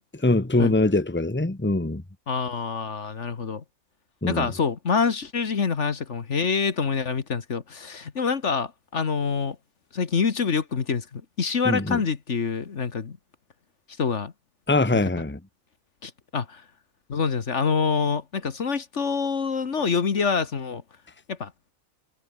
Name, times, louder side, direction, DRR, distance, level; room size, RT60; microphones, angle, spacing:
voice 1, 0.2-2.0 4.2-4.5 11.6-12.0 14.7-15.4, left 2 dB, 10° left, 1.4 m, -22 dB
voice 2, 2.3-3.6 4.3-9.6 9.9-13.2 14.0-14.3 14.9-15.0 16.0-16.6 17.1-20.8 21.3-21.5, left 5 dB, 60° left, 1.8 m, -26 dB
omnidirectional pair, 1.4 m